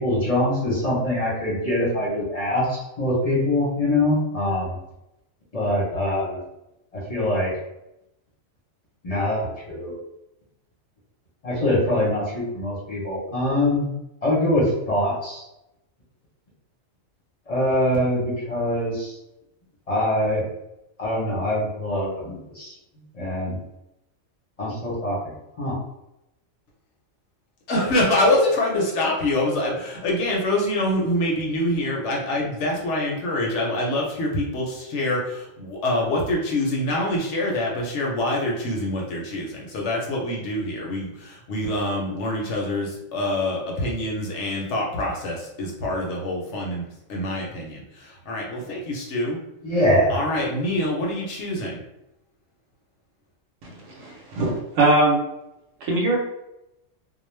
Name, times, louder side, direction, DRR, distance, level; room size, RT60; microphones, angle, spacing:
voice 1, 0.0-4.7 5.5-6.4 6.9-7.5 9.0-9.9 11.4-13.8 14.2-15.4 17.5-19.2 19.9-20.4 21.0-22.7 23.1-23.6 24.6-25.2 25.6-25.7 49.6-50.2, left 1 dB, 35° left, -6 dB, 0.7 m, -23 dB
voice 2, 27.7-49.4 50.1-51.8, left 1 dB, 65° left, -2 dB, 0.9 m, -25 dB
voice 3, 54.0-55.2 55.8-56.2, right 2 dB, 75° right, 0 dB, 1.0 m, -21 dB
2.3 x 2.0 x 3.1 m, 0.86 s
omnidirectional pair, 1.4 m